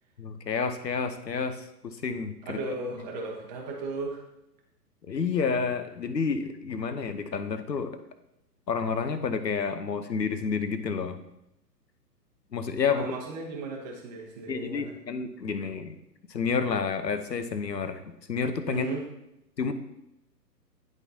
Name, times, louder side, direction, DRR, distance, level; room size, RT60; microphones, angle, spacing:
voice 1, 0.2-2.6 5.1-8.0 8.7-11.2 12.5-13.1 14.5-16.0 16.3-18.0 18.3-18.9 19.6-19.7, left 5 dB, 75° left, 10 dB, 0.8 m, -29 dB
voice 2, 2.4-4.2 12.9-14.9 18.7-19.0, right 3 dB, 25° right, -1 dB, 1.1 m, -35 dB
10.5 x 3.6 x 2.7 m, 0.85 s
figure-of-eight pair, 125°, 50 cm